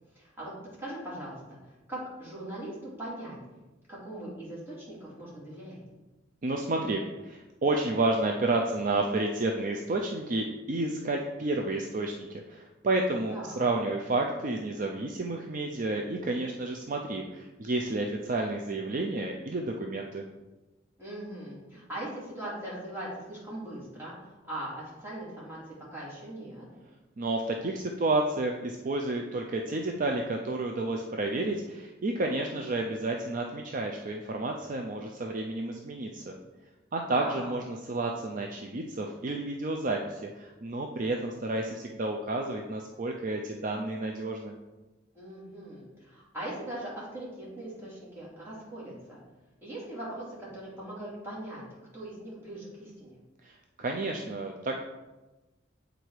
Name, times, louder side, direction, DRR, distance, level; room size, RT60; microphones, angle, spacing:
voice 1, 0.1-0.5 0.8-1.6 1.9-3.4 3.9-5.8 13.3-13.7 21.0-26.7 37.1-37.5 45.1-49.2 49.6-51.6 51.9-53.2, right 1 dB, 10° right, -8 dB, 2.5 m, -40 dB
voice 2, 6.4-20.3 27.2-36.4 36.9-44.6 53.4-54.8, right 2 dB, 45° right, 2 dB, 0.5 m, -31 dB
8.1 x 3.9 x 4.7 m, 1.1 s
head